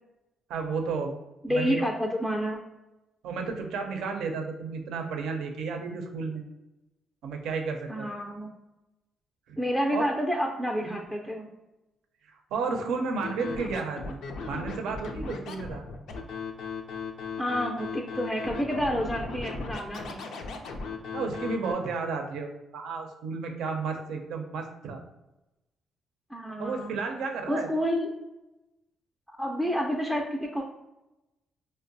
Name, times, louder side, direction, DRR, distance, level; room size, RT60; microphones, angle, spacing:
voice 1, 0.5-1.1 1.5-1.8 3.2-6.4 7.2-8.1 9.5-9.6 9.9-10.1 10.8-11.1 12.3-14.2 14.5-15.8 21.1-25.0 26.6-27.7, right 4 dB, 85° right, 3 dB, 0.5 m, -32 dB
voice 2, 1.4-2.6 7.9-8.5 9.6-11.5 17.4-20.2 26.3-26.9 27.5-28.1 29.4-30.6, equal, ahead, 0 dB, 0.4 m, -29 dB
Scratching (performance technique), 13.2-21.7, left 4 dB, 75° left, 0.4 m, -37 dB
4.6 x 2.1 x 2.6 m, 0.98 s
cardioid pair, 90°, 0 cm